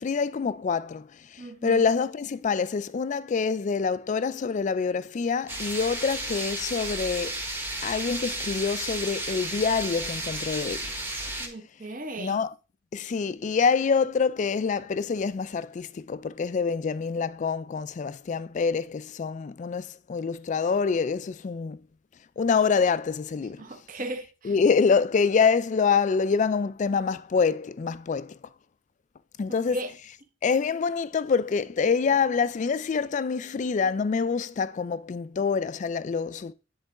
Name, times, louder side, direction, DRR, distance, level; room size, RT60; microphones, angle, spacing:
voice 1, 0.0-7.3 7.8-11.0 12.2-12.5 12.9-21.8 22.4-23.6 24.4-28.4 29.4-29.8 30.4-36.5, left 5 dB, 40° left, 0.3 m, -26 dB
voice 2, 1.4-1.8 11.4-12.4 23.6-24.5 29.5-29.9, right 1 dB, 45° right, 0.9 m, -36 dB
sound 1, 5.5-11.5, right 1 dB, 10° right, 1.0 m, -33 dB
9.7 x 3.9 x 3.6 m
head